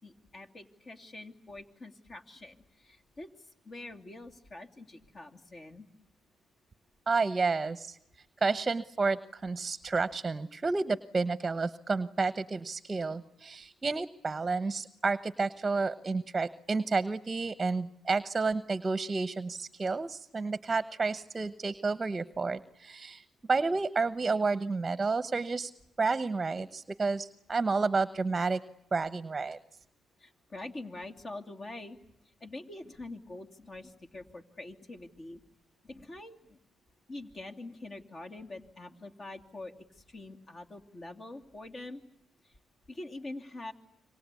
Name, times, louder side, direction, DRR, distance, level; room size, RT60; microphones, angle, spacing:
voice 1, 0.0-5.9 30.2-32.0 32.4-35.4 35.8-36.6 37.1-42.0 42.4-42.5 42.9-43.7, left 2 dB, 40° left, 5 dB, 2.8 m, -45 dB
voice 2, 7.1-8.0 8.4-25.7 26.0-28.6 28.9-29.6, right 4 dB, 25° right, 14 dB, 1.0 m, -30 dB
27.0 x 24.5 x 8.4 m, 0.83 s
cardioid pair, 90°, 0 cm